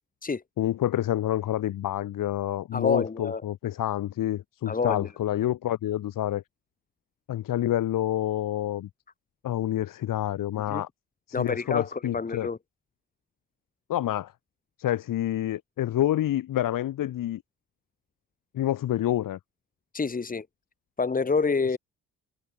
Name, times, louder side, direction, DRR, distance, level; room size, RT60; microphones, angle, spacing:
voice 1, 0.6-6.4 7.3-8.9 9.4-10.9 11.4-12.5 13.9-14.3 14.8-17.4 18.5-19.4, left 12 dB, 85° left, 5.1 m, -28 dB
voice 2, 2.7-3.4 4.7-5.1 10.7-10.8 11.3-12.6 19.9-20.5 21.0-21.8, left 4 dB, 25° left, 6.3 m, -27 dB
cardioid pair, 145°, 32 cm